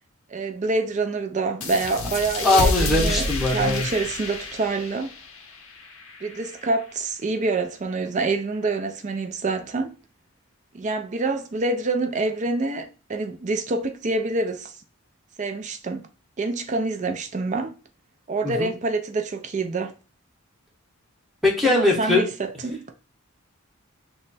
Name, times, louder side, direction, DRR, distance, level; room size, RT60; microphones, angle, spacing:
voice 1, 0.3-5.1 6.2-9.9 10.7-14.8 15.4-16.0 16.4-17.7 18.3-19.9 21.6-22.9, right 3 dB, 35° right, 0.4 m, -26 dB
sound 1, 1.6-6.8, left 2 dB, 75° left, 0.6 m, -29 dB
voice 2, 2.4-3.8 18.4-18.7 21.4-22.3, left 2 dB, ahead, 0.8 m, -21 dB
3.1 x 2.2 x 4.0 m
head